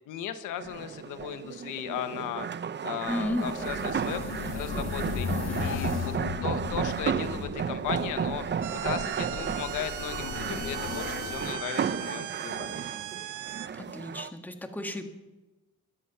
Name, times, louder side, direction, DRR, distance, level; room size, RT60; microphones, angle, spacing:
voice 1, 0.1-2.5 2.8-5.3 5.6-6.1 6.4-12.9, left 9 dB, 90° left, 9 dB, 1.3 m, -36 dB
sound 1, 0.6-14.3, right 7 dB, 35° right, 0.7 m, -33 dB
sound 2, 3.1-11.5, left 6 dB, 60° left, 1.5 m, -36 dB
voice 2, 3.1-3.9 5.3-5.7 13.7-15.1, left 1 dB, 5° left, 5 dB, 1.8 m, -34 dB
sound 3, 8.6-13.7, right 13 dB, 80° right, 0.8 m, -39 dB
22.5 x 8.2 x 5.8 m, 1.1 s
cardioid pair, 90°, 30 cm